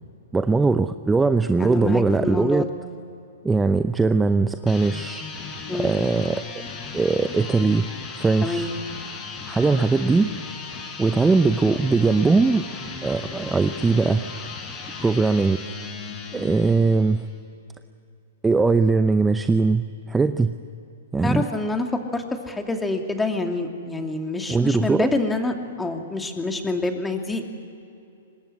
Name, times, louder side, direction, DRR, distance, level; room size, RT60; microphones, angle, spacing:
voice 1, 0.3-2.7 3.4-5.2 5.8-6.4 6.9-7.8 8.2-8.7 9.5-10.3 11.0-12.6 13.0-14.2 15.0-15.6 16.3-17.2 18.4-20.5 21.1-21.4 24.5-25.1, right 4 dB, 10° right, 10 dB, 0.7 m, -20 dB
voice 2, 1.6-2.7 5.7-5.9 8.4-8.7 21.2-27.5, left 2 dB, 10° left, 4 dB, 2.6 m, -27 dB
sound 1, 4.6-17.3, left 4 dB, 25° left, 4.6 m, -36 dB
24.5 x 20.5 x 9.9 m, 2.6 s
hypercardioid pair, 115°, 0 cm